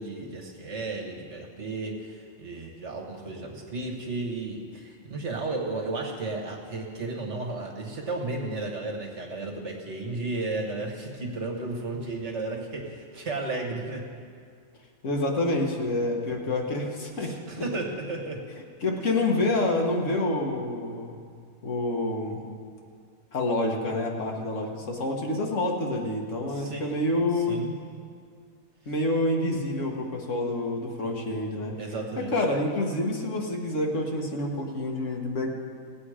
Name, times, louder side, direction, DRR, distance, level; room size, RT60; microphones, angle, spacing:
voice 1, 0.0-14.1 16.3-16.4 17.2-18.5 26.5-27.0 27.5-27.7 31.8-32.3, right 2 dB, 60° right, 1 dB, 1.7 m, -33 dB
voice 2, 15.0-17.7 18.8-21.2 21.6-22.4 23.3-27.7 28.9-31.7 32.2-35.5, left 2 dB, 65° left, 0 dB, 1.7 m, -28 dB
18.0 x 8.5 x 4.9 m, 2.2 s
omnidirectional pair, 1.4 m